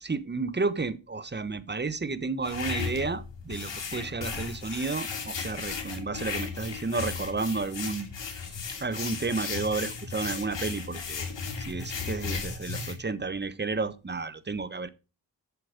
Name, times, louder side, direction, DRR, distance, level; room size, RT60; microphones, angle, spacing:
voice 1, 0.0-8.1 8.4-8.5 8.8-11.2 11.6-14.9, right 3 dB, 25° right, 1.1 m, -32 dB
sound 1, 2.4-13.0, left 5 dB, 75° left, 2.4 m, -35 dB
8.1 x 7.0 x 5.0 m
cardioid pair, 45°, 44 cm